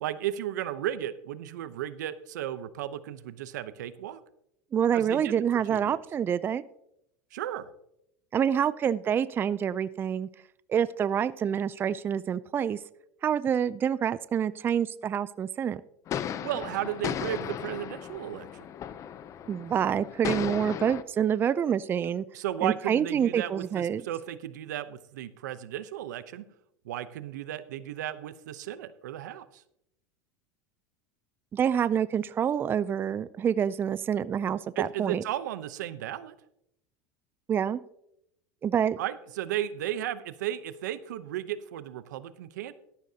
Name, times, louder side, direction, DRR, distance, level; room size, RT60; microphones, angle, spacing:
voice 1, 0.0-4.2 4.9-6.0 7.3-7.7 16.4-18.7 22.3-26.5 26.8-29.6 34.8-36.3 39.0-42.7, right 12 dB, 90° right, 14 dB, 0.7 m, -34 dB
voice 2, 4.7-6.6 8.3-10.3 10.7-12.8 13.2-15.8 19.5-22.2 22.6-24.0 31.5-35.2 37.5-37.8 38.6-39.0, right 8 dB, 25° right, 17 dB, 0.4 m, -27 dB
sound 1, 16.1-21.0, left 9 dB, 35° left, 0.6 m, -35 dB
13.0 x 11.5 x 2.8 m, 0.77 s
supercardioid pair, 125°, 9 cm